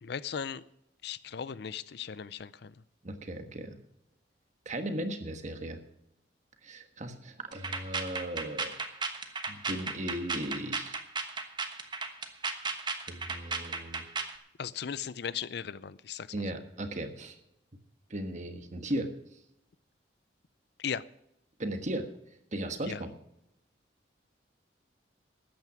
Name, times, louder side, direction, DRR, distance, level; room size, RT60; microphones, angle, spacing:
voice 1, 0.0-0.6 1.0-2.7 14.6-16.5 20.8-21.0 22.9-23.0, left 7 dB, 60° left, 18 dB, 0.5 m, -37 dB
voice 2, 3.0-3.8 4.6-5.8 6.6-8.8 9.5-11.0 13.1-14.1 16.3-17.4 18.1-19.1 21.6-22.1 22.5-23.1, right 1 dB, 40° right, 7 dB, 1.4 m, -36 dB
sound 1, 7.5-14.4, right 4 dB, 25° right, 1.1 m, -35 dB
13.5 x 9.2 x 6.1 m, 0.80 s
head